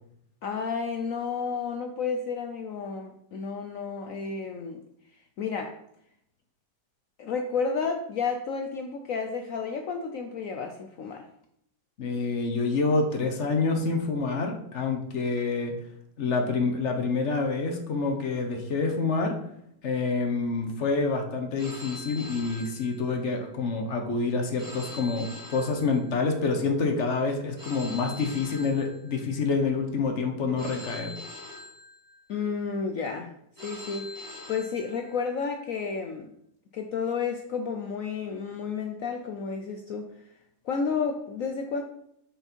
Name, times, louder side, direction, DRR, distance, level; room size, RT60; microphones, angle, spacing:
voice 1, 0.4-4.8 5.1-5.8 7.2-11.3 32.3-33.3 33.6-36.3 36.7-40.3 40.6-41.8, left 5 dB, 75° left, 4 dB, 0.7 m, -31 dB
voice 2, 12.0-15.7 16.2-19.4 19.8-31.1, left 4 dB, 50° left, 4 dB, 0.9 m, -27 dB
Telephone, 21.6-23.4 24.6-26.4 27.6-29.4 30.6-32.4 33.6-35.4, left 2 dB, 55° right, 3.4 m, -43 dB
6.0 x 5.2 x 4.4 m, 0.74 s
omnidirectional pair, 2.1 m